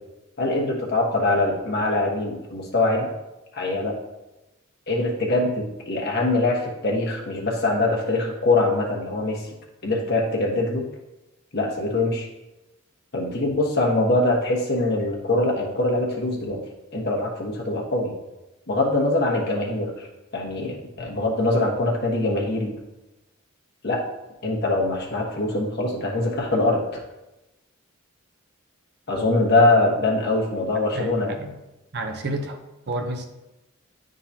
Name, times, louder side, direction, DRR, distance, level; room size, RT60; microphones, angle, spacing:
voice 1, 0.4-3.1 3.5-4.0 4.9-9.4 9.8-10.9 11.5-12.3 13.1-16.6 16.9-18.1 18.7-20.1 20.3-22.7 23.8-24.0 24.4-26.8 29.1-31.3, left 2 dB, 50° left, -1 dB, 1.3 m, -23 dB
voice 2, 30.9-31.6 31.9-32.6 32.9-33.2, right 2 dB, 55° right, 3 dB, 0.8 m, -30 dB
11.0 x 3.9 x 2.8 m, 0.99 s
head